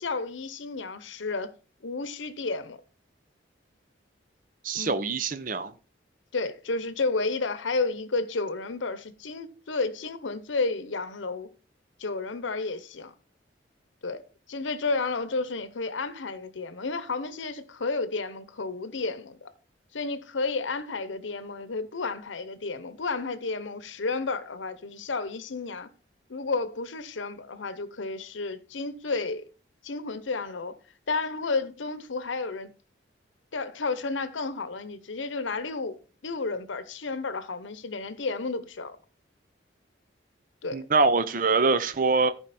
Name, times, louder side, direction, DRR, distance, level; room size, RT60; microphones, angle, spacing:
voice 1, 0.0-1.5 1.8-2.8 4.8-5.0 6.3-11.5 12.0-13.1 14.0-14.2 14.5-19.5 19.9-25.9 26.3-29.5 29.8-30.7 31.1-32.7 33.5-39.0 40.6-40.9, left 3 dB, 90° left, 0.8 m, -31 dB
voice 2, 4.6-5.7 40.7-42.3, right 4 dB, 45° right, 0.6 m, -24 dB
14.5 x 4.8 x 4.2 m
head